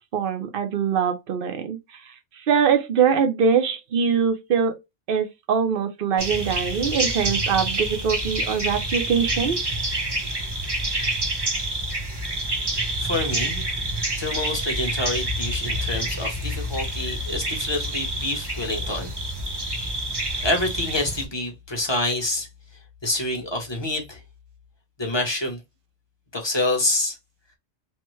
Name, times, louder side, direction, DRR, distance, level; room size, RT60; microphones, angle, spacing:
voice 1, 0.1-1.8 2.5-4.8 5.1-9.6, right 6 dB, 55° right, 0.8 m, -23 dB
sound 1, 6.2-21.3, right 1 dB, 25° right, 0.8 m, -27 dB
voice 2, 13.0-13.6 14.2-19.1 20.4-22.5 23.0-24.2 25.0-25.6 26.3-27.2, left 2 dB, 25° left, 0.9 m, -27 dB
3.3 x 2.1 x 3.1 m
omnidirectional pair, 1.2 m